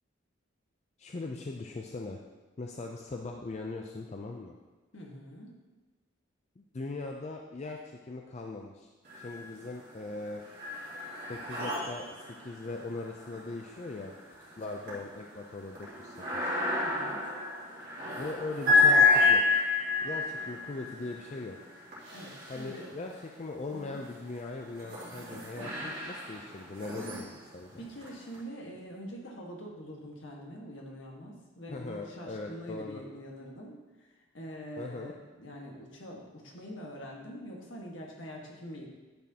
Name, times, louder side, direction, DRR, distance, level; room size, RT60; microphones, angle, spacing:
voice 1, 1.0-2.2 2.6-4.5 6.6-8.9 9.2-10.4 11.3-14.1 14.6-16.5 18.2-19.4 20.0-21.6 22.5-27.8 31.7-33.0 34.8-35.1, left 3 dB, 35° left, 2 dB, 0.4 m, -40 dB
voice 2, 4.9-5.5 16.8-17.2 22.1-22.9 23.7-24.0 27.8-38.9, equal, 70° left, -1 dB, 1.5 m, -44 dB
sound 1, 9.1-9.7 10.1-23.3 23.9-28.4, left 3 dB, 50° right, 2.7 m, -30 dB
10.5 x 6.3 x 2.9 m, 1.2 s
head